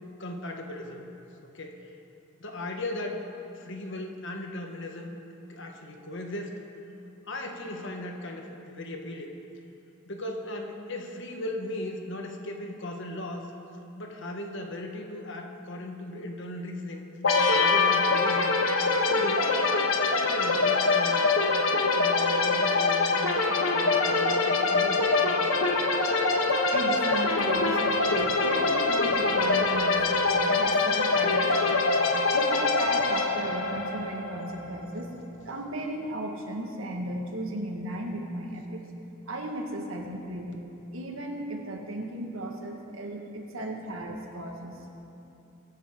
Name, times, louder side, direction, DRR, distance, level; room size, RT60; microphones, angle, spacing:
voice 1, 0.2-1.1 1.4-1.9 2.4-3.3 3.5-5.2 5.5-6.6 7.3-9.3 10.1-13.5 14.0-17.0 17.5-18.5 19.0-21.3 21.9-23.4 23.7-25.5, left 1 dB, 65° left, 3 dB, 1.4 m, -37 dB
sound 1, 17.2-34.8, left 3 dB, 80° left, 1.2 m, -24 dB
voice 2, 26.7-30.1 30.4-31.8 32.3-35.1 35.5-38.8 39.3-40.6 40.9-44.8, right 1 dB, 90° right, 1 dB, 1.7 m, -35 dB
22.5 x 10.5 x 3.8 m, 2.8 s
head